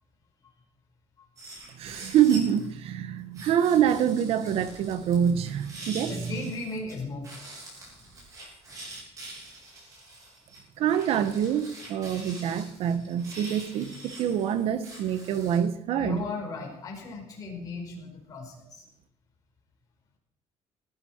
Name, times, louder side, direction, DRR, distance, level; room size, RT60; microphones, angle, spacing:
sound 1, 1.4-2.7 3.3-6.9 7.2-15.6, right 1 dB, 30° right, 7.7 m, -45 dB
voice 1, 1.8-6.1 10.8-16.2, right 9 dB, 60° right, 1.3 m, -26 dB
voice 2, 6.0-7.5 15.9-18.8, left 3 dB, 30° left, 4.9 m, -37 dB
18.5 x 15.0 x 4.6 m
cardioid pair, 180°, 11 cm